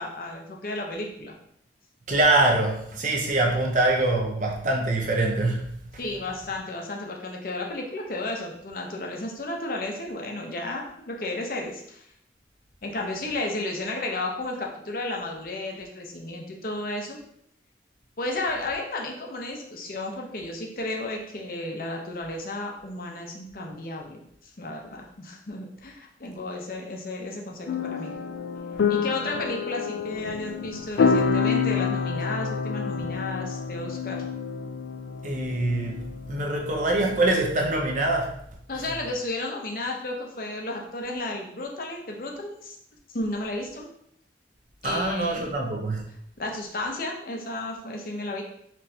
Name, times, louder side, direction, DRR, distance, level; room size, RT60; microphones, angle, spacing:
voice 1, 0.0-1.3 6.0-12.1 12.8-17.2 18.2-28.1 28.9-34.2 38.7-42.8 43.1-43.9 44.8-45.5 46.4-48.4, left 2 dB, 50° left, 1 dB, 0.7 m, -33 dB
voice 2, 2.1-5.6 35.2-36.0 36.3-38.3 44.8-46.0, right 2 dB, 45° right, 0 dB, 0.7 m, -24 dB
sound 1, 27.7-37.3, left 5 dB, 90° left, 0.4 m, -28 dB
4.4 x 3.1 x 2.7 m, 0.72 s
head